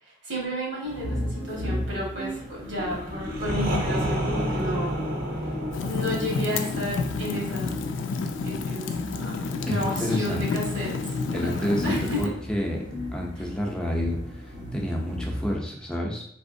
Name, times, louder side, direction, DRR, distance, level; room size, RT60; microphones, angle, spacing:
voice 1, 0.0-5.0 5.4-5.5 5.8-7.8 8.4-12.3, equal, 90° right, -4 dB, 1.4 m, -32 dB
sound 1, 0.8-15.6, left 1 dB, 75° right, 0.9 m, -36 dB
sound 2, 2.7-8.4, right 1 dB, 50° right, 0.6 m, -30 dB
Fire, 5.7-12.3, left 4 dB, 85° left, 0.3 m, -30 dB
voice 2, 9.7-10.4 11.3-12.8 13.1-14.4 14.7-16.2, equal, 5° left, -2 dB, 0.5 m, -29 dB
3.5 x 2.9 x 2.6 m, 0.71 s
head